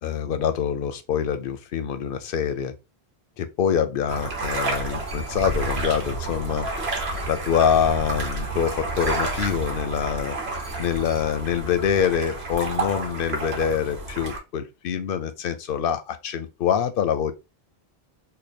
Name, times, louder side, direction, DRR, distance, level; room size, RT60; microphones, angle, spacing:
voice 1, 0.0-2.7 3.4-6.7 7.3-10.4 10.8-17.3, left 8 dB, 65° left, 0.7 m, -25 dB
sound 1, 4.1-14.4, right 2 dB, 75° right, 1.2 m, -30 dB
Screech, 5.0-6.1 7.1-8.0 9.0-9.6 10.5-11.3, right 2 dB, 25° right, 0.9 m, -47 dB
3.3 x 2.2 x 4.1 m
omnidirectional pair, 1.1 m